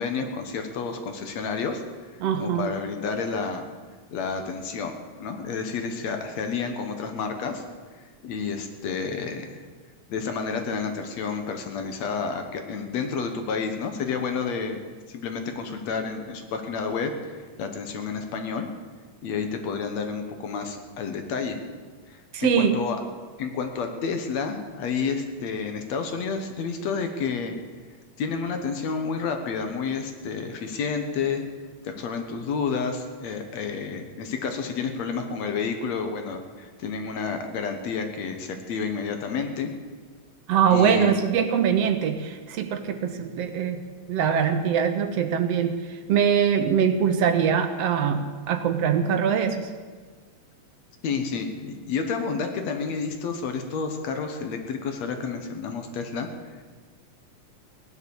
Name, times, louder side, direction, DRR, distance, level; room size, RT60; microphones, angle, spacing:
voice 1, 0.0-1.8 2.4-3.6 4.1-7.6 8.2-9.6 10.1-14.8 15.1-18.7 19.2-21.6 22.1-23.0 23.4-27.6 28.2-31.4 31.8-39.7 40.7-41.1 51.0-56.3, left 5 dB, 70° left, 6 dB, 2.4 m, -30 dB
voice 2, 2.2-2.7 22.3-22.8 40.5-43.8 44.1-49.7, right 7 dB, 70° right, 8 dB, 1.8 m, -23 dB
17.0 x 11.0 x 7.1 m, 1.5 s
omnidirectional pair, 3.3 m